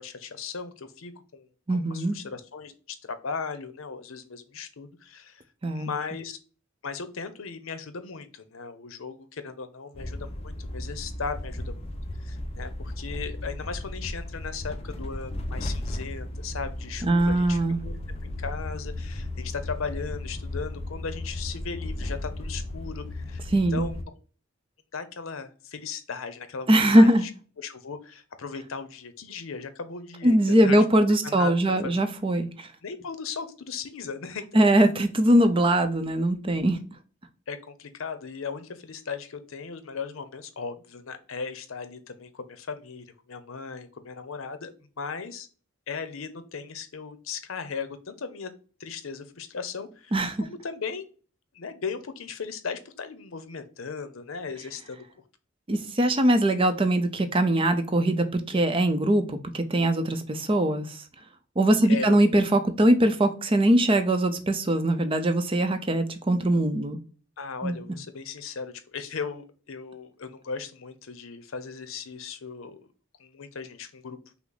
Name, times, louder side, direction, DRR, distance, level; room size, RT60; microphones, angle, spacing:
voice 1, 0.0-5.4 5.7-6.4 6.8-11.7 12.2-18.0 18.2-23.4 23.7-24.1 24.9-26.7 26.9-27.3 27.6-30.8 31.2-32.0 32.8-34.7 37.5-44.7 45.0-45.5 45.9-48.5 48.8-51.1 51.5-55.0 61.9-62.2 67.4-72.8 73.2-74.2, left 5 dB, 90° left, 0.7 m, -37 dB
voice 2, 1.7-2.2 5.6-5.9 17.0-17.8 23.5-23.9 26.7-27.2 30.2-32.7 34.5-36.8 50.1-50.4 55.7-61.0 61.6-67.0 67.6-67.7, right 1 dB, 25° right, 0.5 m, -21 dB
sound 1, 9.9-24.0, left 1 dB, 30° left, 0.6 m, -35 dB
5.9 x 2.1 x 3.9 m
head